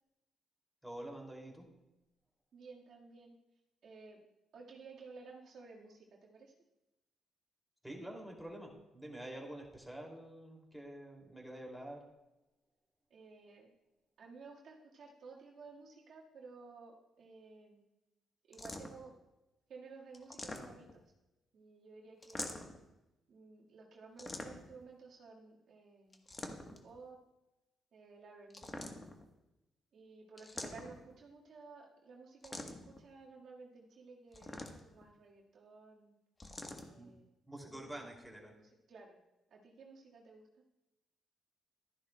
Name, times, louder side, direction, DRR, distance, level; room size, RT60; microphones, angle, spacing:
voice 1, 0.8-1.6 7.8-12.0 37.0-37.1 37.5-38.5, right 1 dB, ahead, -1 dB, 2.5 m, -47 dB
voice 2, 2.5-3.4 3.8-4.2 4.5-6.5 13.1-13.7 14.2-17.8 18.5-19.1 19.7-21.0 21.5-22.7 23.3-26.2 26.6-27.2 27.9-29.0 29.9-36.2 36.7-37.3 37.6-38.2 38.5-39.2 39.5-40.6, right 4 dB, 65° right, -2 dB, 1.6 m, -55 dB
sound 1, 18.5-19.1 20.1-21.0 22.2-22.8 24.2-24.8 26.1-26.9 28.5-29.3 30.4-31.1 32.4-33.0 34.3-35.0 36.4-36.9, left 2 dB, 25° left, 1.1 m, -45 dB
12.5 x 10.5 x 2.2 m, 0.97 s
cardioid pair, 90°, 0 cm